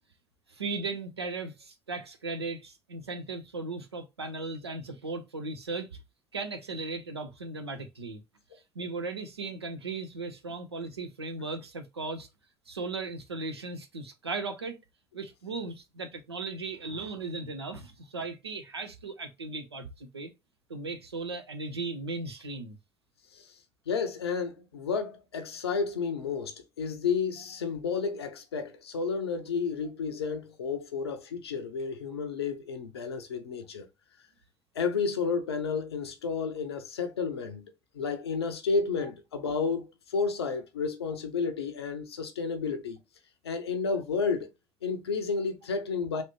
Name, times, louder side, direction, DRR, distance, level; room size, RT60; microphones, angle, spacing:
voice 1, 0.5-6.0 6.3-8.2 8.7-12.3 12.7-14.8 15.1-20.3 20.7-22.7, right 3 dB, 90° right, 0.5 m, -37 dB
voice 2, 23.9-33.9 34.7-43.0 43.4-44.5 44.8-46.2, left 5 dB, 80° left, 0.5 m, -31 dB
3.2 x 2.6 x 2.9 m
figure-of-eight pair, 50°, 13 cm